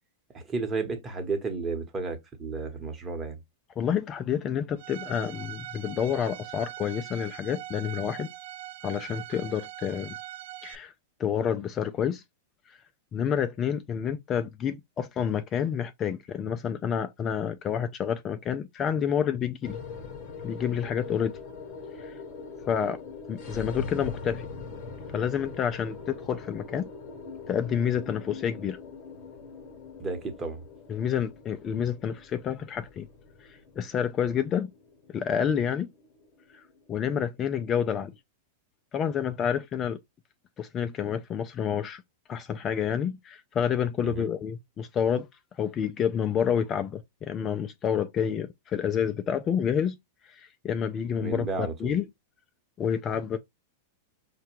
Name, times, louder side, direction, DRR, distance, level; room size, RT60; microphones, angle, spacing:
voice 1, 0.3-3.4 30.0-30.6 44.0-44.3 51.2-51.9, right 4 dB, 20° right, 0.9 m, -32 dB
voice 2, 3.8-8.3 8.8-10.1 10.6-10.9 11.2-12.2 12.7-12.8 13.1-19.8 20.4-21.4 22.0-22.1 22.7-23.0 23.3-24.5 25.1-26.9 27.5-28.8 30.9-33.1 33.4-34.7 35.1-35.9 36.5-36.6 36.9-38.1 38.9-40.0 40.6-42.0 42.3-45.3 45.5-50.0 50.2-52.1 52.8-53.4, left 8 dB, 30° left, 0.3 m, -29 dB
Bowed string instrument, 4.8-10.8, right 13 dB, 65° right, 0.4 m, -42 dB
sound 1, 19.6-38.0, left 4 dB, 45° left, 0.9 m, -42 dB
4.8 x 2.2 x 2.9 m
hypercardioid pair, 125°, 0 cm